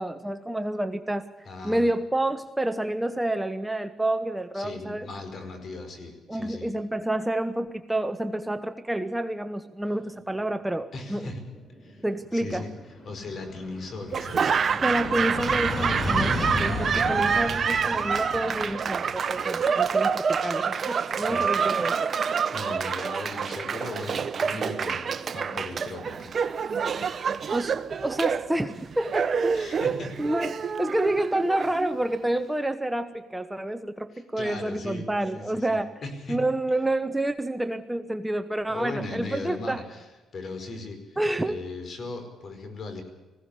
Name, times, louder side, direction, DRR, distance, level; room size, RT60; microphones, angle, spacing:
voice 1, 0.0-1.3 1.6-5.1 6.3-11.3 12.0-12.6 14.7-22.1 27.5-27.7 28.0-29.6 30.2-35.9 36.3-39.8 41.2-41.6, right 1 dB, 10° right, 10 dB, 1.0 m, -28 dB
voice 2, 1.4-1.9 4.5-6.7 10.9-11.4 11.8-12.1 12.3-12.7 13.0-14.5 21.3-21.5 22.5-26.3 29.5-30.1 34.1-35.0 35.3-36.4 38.7-40.1 40.3-41.2 41.5-43.0, left 3 dB, 50° left, 7 dB, 5.0 m, -38 dB
sound 1, 10.4-10.5 10.8-10.9 11.1-22.6, left 1 dB, 30° left, 4.1 m, -35 dB
Laughter / Applause, 14.1-32.2, right 6 dB, 45° right, 1.2 m, -27 dB
20.0 x 16.5 x 8.5 m, 1.2 s
cardioid pair, 90°, 0 cm